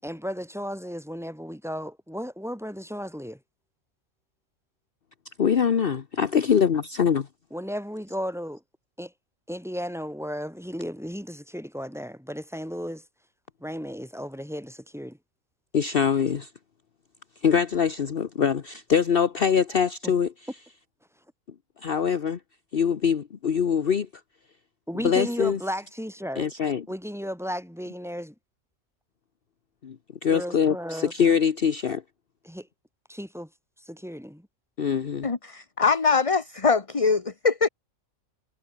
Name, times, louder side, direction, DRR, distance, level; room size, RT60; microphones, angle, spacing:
voice 1, 0.0-3.4 7.5-8.6 9.0-9.1 9.5-13.0 13.6-15.2 20.0-20.1 24.9-26.5 26.9-28.3 30.3-31.1 32.4-32.7 33.1-33.5 33.8-34.5, equal, ahead, 4.6 m, -34 dB
voice 2, 5.4-7.3 15.7-16.5 17.4-20.3 21.8-22.4 22.7-24.1 25.0-25.6 26.4-26.8 29.8-30.0 30.2-32.0 34.8-35.3, left 7 dB, 50° left, 1.1 m, -23 dB
voice 3, 35.2-37.7, left 5 dB, 25° left, 1.3 m, -23 dB
omnidirectional pair, 1.3 m